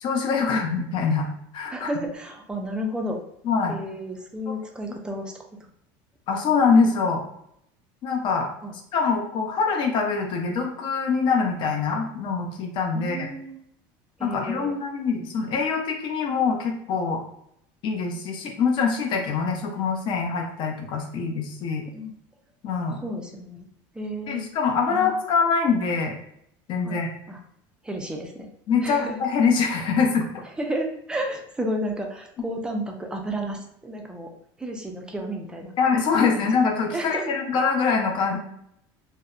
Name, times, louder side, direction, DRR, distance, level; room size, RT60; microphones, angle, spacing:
voice 1, 0.0-1.3 1.5-1.9 3.4-3.8 4.5-4.6 6.3-7.2 8.0-8.5 8.9-13.3 14.2-17.2 17.8-21.9 22.6-23.0 24.3-26.1 26.7-27.1 28.7-30.4 35.8-38.4, left 5 dB, 45° left, 2 dB, 0.5 m, -24 dB
voice 2, 1.7-3.2 3.7-5.3 8.6-8.7 12.9-13.6 14.2-14.7 21.9-22.1 23.0-23.7 24.0-24.4 24.9-25.2 26.8-27.0 27.3-27.4 27.8-28.5 28.8-29.2 30.6-34.3 34.6-35.8 36.3-36.5 36.9-37.3, equal, 10° right, 2 dB, 0.3 m, -32 dB
2.7 x 2.0 x 2.3 m, 0.74 s
cardioid pair, 135°, 11 cm